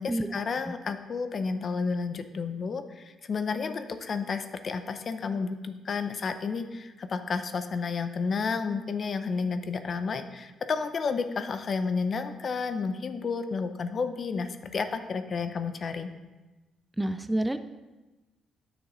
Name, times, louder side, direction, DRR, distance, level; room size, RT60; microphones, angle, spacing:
voice 1, 0.0-16.1, left 5 dB, 45° left, 9 dB, 0.6 m, -31 dB
voice 2, 17.0-17.6, right 1 dB, 10° right, 10 dB, 0.4 m, -28 dB
9.2 x 6.4 x 3.9 m, 1.1 s
cardioid pair, 90°, 0 cm